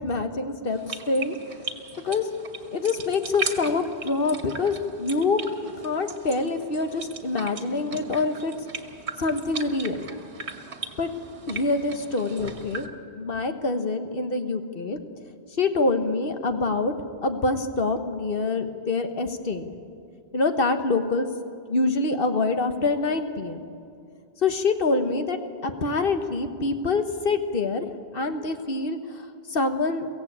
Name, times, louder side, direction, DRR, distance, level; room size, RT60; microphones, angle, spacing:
voice 1, 0.0-1.3 2.0-2.3 2.7-5.4 5.8-8.5 9.2-10.0 11.0-11.1 11.5-12.9 13.1-15.0 15.6-16.9 17.2-19.7 20.3-21.3 21.7-23.6 24.4-27.9 28.1-29.0 29.5-30.1, left 3 dB, 55° left, 7 dB, 1.4 m, -25 dB
sound 1, 0.7-12.9, right 4 dB, 85° right, 1.7 m, -38 dB
23.0 x 16.0 x 8.6 m, 2.4 s
omnidirectional pair, 1.1 m